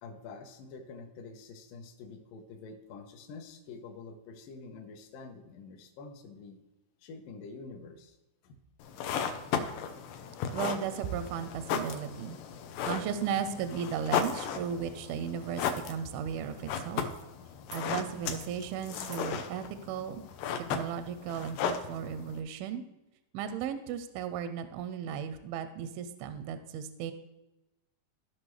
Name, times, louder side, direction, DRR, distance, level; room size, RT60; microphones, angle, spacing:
voice 1, 0.0-6.6 7.0-8.2 8.4-8.6, left 4 dB, 70° left, 4 dB, 2.3 m, -47 dB
sound 1, 8.8-22.4, left 7 dB, 85° left, 2.8 m, -36 dB
voice 2, 10.5-12.4 12.8-17.1 17.7-20.2 20.6-22.8 23.3-27.1, right 8 dB, 85° right, 10 dB, 2.3 m, -35 dB
sound 2, 17.7-17.9 18.2-18.6 19.0-19.3 20.7-20.8, right 4 dB, 65° right, 1.2 m, -54 dB
15.0 x 5.8 x 3.2 m, 0.99 s
omnidirectional pair, 4.6 m